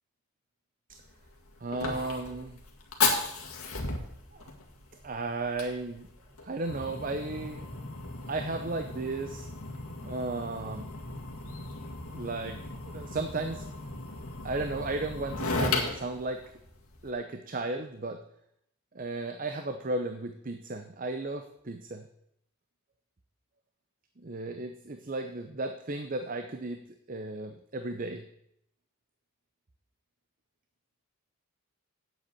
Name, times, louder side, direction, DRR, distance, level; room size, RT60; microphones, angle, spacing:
Fire, 0.9-17.1, left 3 dB, 75° left, 1.9 m, -35 dB
voice 1, 1.6-2.6 4.3-4.5 5.0-6.1 6.4-7.6 8.3-9.5 10.0-10.9 12.1-13.6 14.4-16.4 17.0-18.2 18.9-22.0 24.2-26.8 27.1-28.2, right 2 dB, 40° right, 7 dB, 0.6 m, -34 dB
8.0 x 7.2 x 8.6 m, 0.74 s
head